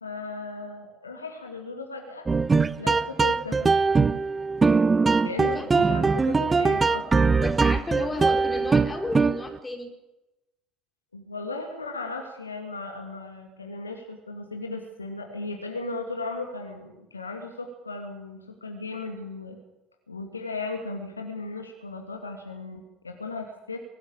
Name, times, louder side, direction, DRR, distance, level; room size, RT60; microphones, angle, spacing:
voice 1, 0.0-2.2 2.8-3.7 5.2-7.5 7.8-8.1 11.1-19.6 20.1-23.8, left 3 dB, 80° left, 3 dB, 2.7 m, -36 dB
sound 1, 2.3-9.6, right 4 dB, 20° right, 0.7 m, -21 dB
voice 2, 7.4-9.9, left 2 dB, 15° left, 4 dB, 4.1 m, -33 dB
23.0 x 14.0 x 8.9 m, 0.98 s
figure-of-eight pair, 60°, 0 cm